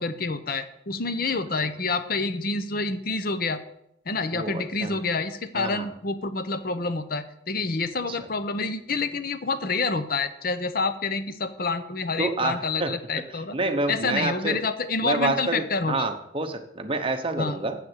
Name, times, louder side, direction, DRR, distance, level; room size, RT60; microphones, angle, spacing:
voice 1, 0.0-3.6 4.1-13.6 13.9-16.1 17.4-17.6, left 3 dB, 50° left, 11 dB, 0.9 m, -28 dB
voice 2, 4.3-5.0 5.5-5.9 8.1-8.2 12.2-12.9 13.5-14.6 15.0-17.8, right 2 dB, 30° right, 6 dB, 1.0 m, -28 dB
7.8 x 7.4 x 8.1 m, 0.78 s
head